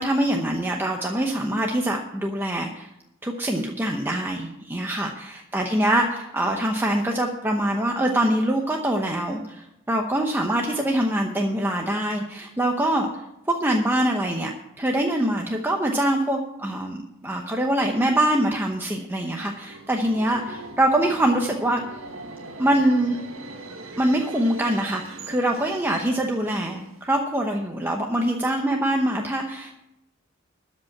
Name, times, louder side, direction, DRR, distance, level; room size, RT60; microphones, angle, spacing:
voice 1, 0.0-2.9 3.2-13.1 13.5-14.5 14.8-21.8 22.6-23.2 24.0-29.7, right 1 dB, 10° right, 1 dB, 0.8 m, -24 dB
Subway metro underground, 19.4-27.2, right 2 dB, 90° right, 1.6 m, -41 dB
13.0 x 5.3 x 8.5 m, 0.87 s
head